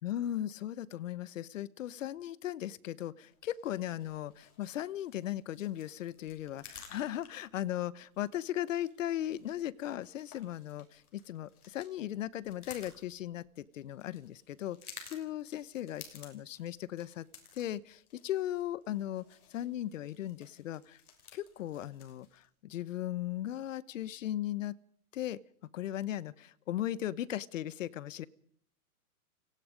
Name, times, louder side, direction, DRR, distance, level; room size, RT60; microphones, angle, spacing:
voice 1, 0.0-17.3 17.5-19.3 19.5-21.0 21.3-24.8 25.1-25.4 25.7-28.3, left 12 dB, 60° left, 20 dB, 1.1 m, -37 dB
sound 1, 3.3-22.5, left 7 dB, 90° left, 6.8 m, -56 dB
29.5 x 18.5 x 5.2 m, 0.65 s
hypercardioid pair, 165°, 43 cm